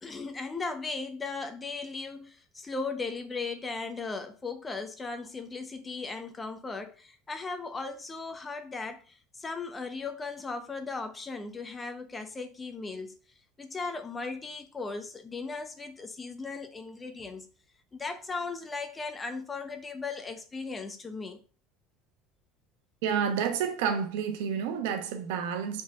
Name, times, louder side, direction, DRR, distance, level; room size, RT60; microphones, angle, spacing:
voice 1, 0.0-13.2 13.6-17.5 17.9-21.4, left 4 dB, 15° left, 0.8 m, -37 dB
voice 2, 23.0-25.8, right 7 dB, 85° right, 1.0 m, -29 dB
5.1 x 3.9 x 5.1 m
cardioid pair, 150°, 0 cm